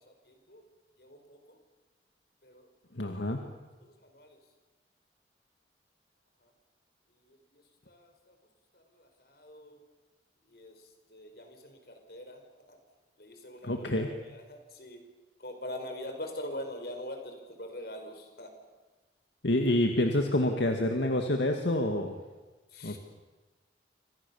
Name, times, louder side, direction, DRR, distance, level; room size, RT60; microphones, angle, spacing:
voice 1, 0.3-0.6 1.0-1.6 2.4-2.7 3.0-3.1 3.8-4.4 7.5-8.3 8.7-9.8 10.5-10.7 11.1-12.8 13.2-15.0 15.4-18.6 22.7-23.0, left 1 dB, 55° left, 5 dB, 5.2 m, -44 dB
voice 2, 3.0-3.4 13.6-14.1 19.4-22.2 22.8-23.0, left 1 dB, 75° left, 4 dB, 2.1 m, -27 dB
28.5 x 26.0 x 7.2 m, 1.2 s
head